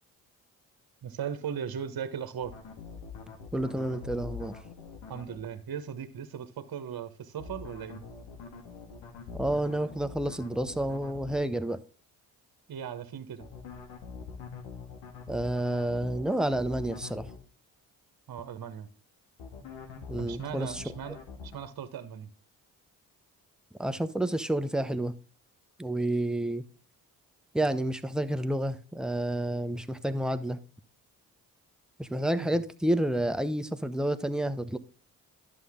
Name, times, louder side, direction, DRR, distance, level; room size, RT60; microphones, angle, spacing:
voice 1, 1.0-2.5 5.1-8.0 12.7-13.5 18.3-18.9 20.2-22.3 32.4-32.5, right 8 dB, 50° right, 1.4 m, -38 dB
sound 1, 2.4-5.4 7.4-11.4 13.4-17.4 19.4-21.6, left 5 dB, 70° left, 2.0 m, -44 dB
voice 2, 3.5-4.6 9.3-11.8 15.3-17.3 20.1-20.8 23.8-25.1 25.8-26.6 27.5-30.6 32.0-34.8, right 1 dB, ahead, 1.0 m, -29 dB
11.0 x 7.0 x 3.6 m
hypercardioid pair, 40°, 45 cm